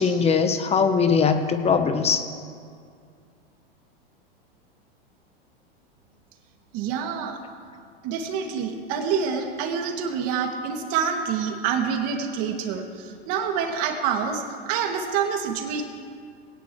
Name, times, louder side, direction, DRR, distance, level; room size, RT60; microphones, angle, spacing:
voice 1, 0.0-2.2, left 5 dB, 20° left, 8 dB, 1.1 m, -21 dB
voice 2, 6.7-7.4 8.0-15.8, right 7 dB, 50° right, 2 dB, 2.4 m, -27 dB
20.0 x 17.5 x 3.2 m, 2.3 s
hypercardioid pair, 110°, 31 cm